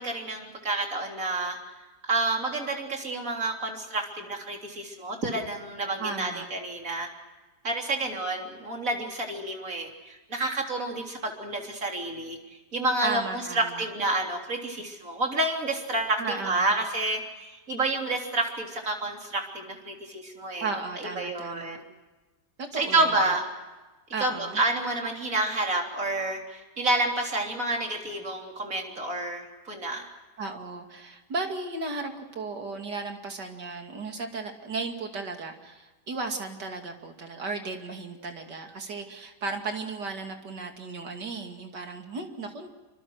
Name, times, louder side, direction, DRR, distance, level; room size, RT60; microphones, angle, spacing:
voice 1, 0.0-1.6 2.1-7.1 7.6-12.4 12.7-20.7 21.0-21.8 22.7-23.4 24.2-30.1, right 2 dB, 50° right, 2 dB, 4.1 m, -29 dB
voice 2, 6.0-6.5 13.0-13.8 16.2-16.7 20.6-21.8 22.6-23.2 24.1-24.6 30.4-42.7, right 3 dB, 90° right, 4 dB, 3.1 m, -35 dB
27.0 x 25.0 x 6.4 m, 1.2 s
omnidirectional pair, 1.8 m